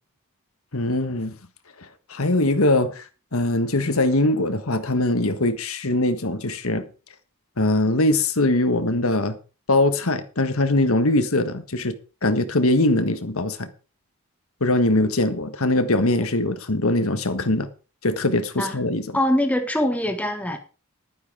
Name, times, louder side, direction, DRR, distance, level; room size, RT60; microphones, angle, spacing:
voice 1, 0.7-1.4 1.8-6.8 7.6-9.4 9.7-11.9 12.2-13.7 14.6-17.7 18.0-19.2, left 2 dB, 70° left, 1.6 m, -22 dB
voice 2, 19.1-20.6, left 1 dB, 5° left, 1.2 m, -23 dB
12.0 x 9.6 x 4.9 m
head